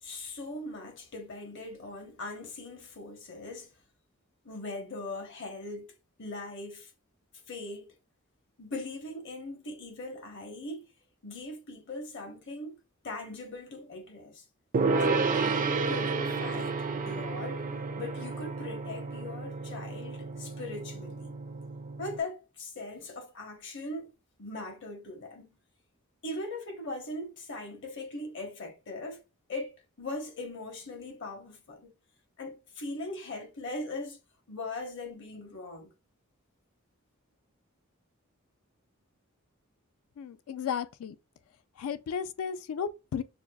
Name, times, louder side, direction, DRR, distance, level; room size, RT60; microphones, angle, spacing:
voice 1, 0.0-3.7 4.4-6.9 7.5-7.9 8.6-10.9 11.2-12.8 13.0-14.4 15.0-17.6 17.9-21.3 22.0-24.1 24.4-25.5 26.2-29.2 29.5-29.7 30.0-31.9 32.4-34.2 34.5-35.9, left 2 dB, 60° left, 1.0 m, -40 dB
Gong, 14.7-22.2, right 4 dB, 40° right, 0.3 m, -31 dB
voice 2, 40.2-41.1 41.8-43.2, left 7 dB, 75° left, 0.3 m, -34 dB
5.8 x 2.3 x 2.2 m
head